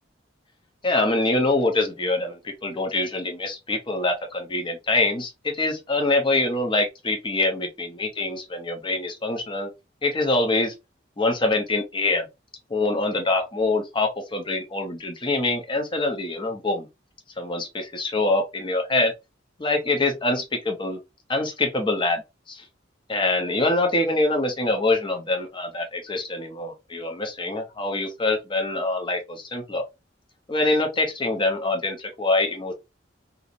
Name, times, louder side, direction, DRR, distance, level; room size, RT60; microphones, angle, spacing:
voice 1, 0.8-9.7 10.0-10.7 11.2-12.3 12.7-16.9 17.4-19.1 19.6-21.0 21.3-22.2 22.5-22.6 23.1-29.8 30.5-32.7, left 2 dB, 25° left, 0.5 m, -24 dB
2.4 x 2.0 x 2.7 m
head